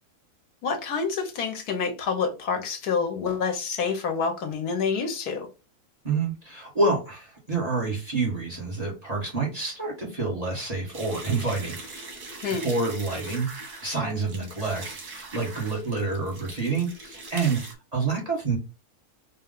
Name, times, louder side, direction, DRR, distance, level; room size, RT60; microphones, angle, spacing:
voice 1, 0.6-5.5 12.4-12.7, left 5 dB, 80° left, 1.4 m, -27 dB
voice 2, 6.0-12.1 12.6-13.5 13.8-14.8 15.1-17.6 17.9-18.6, right 3 dB, 25° right, 1.3 m, -28 dB
sound 1, 10.9-17.7, right 3 dB, 85° right, 1.7 m, -41 dB
3.9 x 2.2 x 3.7 m
omnidirectional pair, 1.6 m